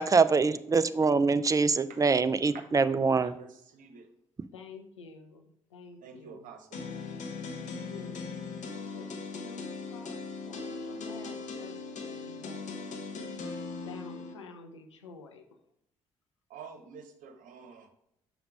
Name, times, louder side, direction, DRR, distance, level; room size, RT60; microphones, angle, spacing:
voice 1, 0.0-3.3, right 4 dB, 20° right, 0.5 m, -24 dB
voice 2, 3.1-4.0 6.0-6.8 16.5-17.9, right 5 dB, 60° right, 1.0 m, -48 dB
voice 3, 4.5-5.5 5.7-6.5 7.9-8.3 8.7-10.2 10.4-12.6 13.9-15.4, left 5 dB, 85° left, 0.6 m, -49 dB
sound 1, 6.7-14.3, left 4 dB, 55° left, 1.1 m, -39 dB
5.9 x 5.2 x 4.8 m
figure-of-eight pair, 45°, 15 cm